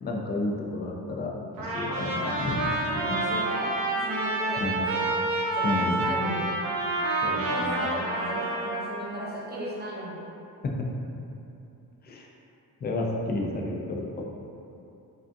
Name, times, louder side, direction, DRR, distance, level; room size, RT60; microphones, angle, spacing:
voice 1, 0.0-1.3 1.6-2.8 4.6-4.8 5.6-6.1 7.2-7.7 12.1-12.3 12.8-14.1, left 2 dB, 30° left, 0 dB, 0.4 m, -31 dB
Trumpet, 1.6-9.0, right 2 dB, 70° right, 0.8 m, -28 dB
voice 2, 2.9-5.2 5.5-6.5 7.2-10.2, equal, 25° right, -6 dB, 0.8 m, -35 dB
5.0 x 2.5 x 2.5 m, 2.7 s
cardioid pair, 150°, 35 cm